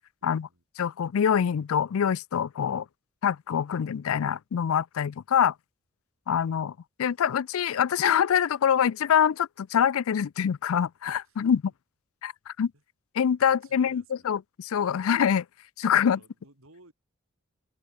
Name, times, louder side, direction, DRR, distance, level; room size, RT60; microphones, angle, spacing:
voice 1, 0.2-0.6 11.2-11.5 12.7-12.8 13.5-14.4 16.0-16.9, right 2 dB, 80° right, 5.2 m, -57 dB
voice 2, 0.8-2.8 3.2-5.5 6.3-6.7 7.0-11.6 12.2-12.7 13.2-15.4 15.8-16.2, left 8 dB, 80° left, 0.4 m, -25 dB
open air
head